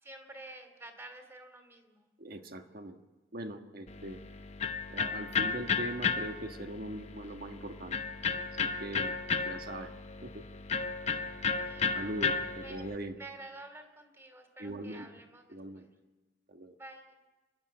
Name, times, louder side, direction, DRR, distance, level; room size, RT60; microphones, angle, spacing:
voice 1, 0.0-2.1 11.6-11.9 12.6-12.8 13.2-15.9 16.8-17.1, right 2 dB, 15° right, 6 dB, 2.7 m, -50 dB
voice 2, 2.2-3.0 3.3-4.2 4.9-8.0 8.6-9.1 9.4-9.9 10.2-10.4 11.9-13.2 14.6-15.1 15.5-15.9 16.5-16.7, right 1 dB, 55° right, 6 dB, 1.5 m, -41 dB
Electric guitar, 3.9-13.0, left 5 dB, 35° left, 0.9 m, -34 dB
29.5 x 12.0 x 8.7 m, 1.2 s
head